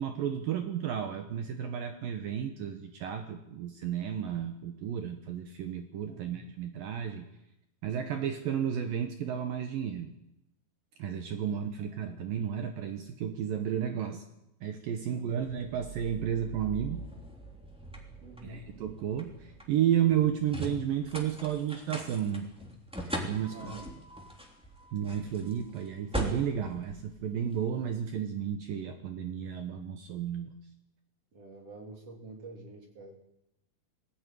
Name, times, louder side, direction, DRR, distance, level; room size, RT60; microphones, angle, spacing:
voice 1, 0.0-7.3 7.8-10.1 11.0-14.2 14.6-17.0 18.4-22.5 23.0-23.8 24.9-30.5, right 9 dB, 70° right, 6 dB, 2.7 m, -32 dB
voice 2, 6.1-6.4 11.4-11.6 12.0-12.1 15.1-15.6 18.2-18.6 23.5-23.9 31.3-33.2, right 2 dB, 40° right, 1 dB, 4.2 m, -48 dB
sound 1, 15.4-27.8, right 1 dB, ahead, 2.3 m, -41 dB
21.0 x 15.0 x 9.3 m, 0.87 s
omnidirectional pair, 4.6 m